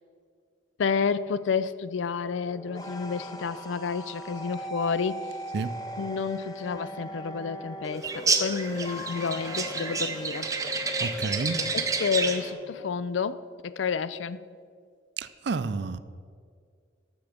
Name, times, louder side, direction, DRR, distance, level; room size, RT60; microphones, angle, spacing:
voice 1, 0.8-5.2 6.0-10.5 11.7-14.4, left 5 dB, 75° left, 0.4 m, -30 dB
sound 1, 2.4-12.8, equal, 20° left, 0.6 m, -39 dB
sound 2, 8.0-12.5, right 4 dB, 15° right, 0.6 m, -29 dB
voice 2, 11.0-11.7 15.2-16.0, right 4 dB, 60° right, 0.4 m, -30 dB
13.0 x 7.0 x 5.1 m
head